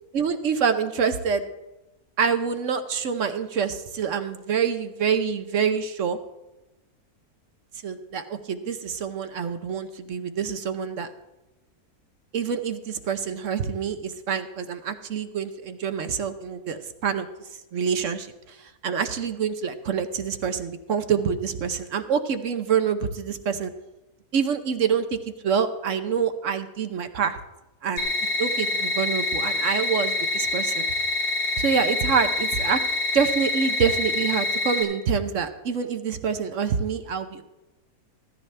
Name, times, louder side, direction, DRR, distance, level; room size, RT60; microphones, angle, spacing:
voice 1, 0.1-1.4 2.2-6.2 7.8-11.1 12.3-17.3 17.7-23.7 24.3-25.2 25.4-27.4 27.8-28.1 28.4-30.9 31.6-32.8 33.1-37.4, right 7 dB, 60° right, 9 dB, 1.0 m, -26 dB
sound 1, 28.0-34.8, left 2 dB, 70° left, 4.0 m, -26 dB
15.5 x 13.5 x 3.3 m, 1.0 s
omnidirectional pair, 1.7 m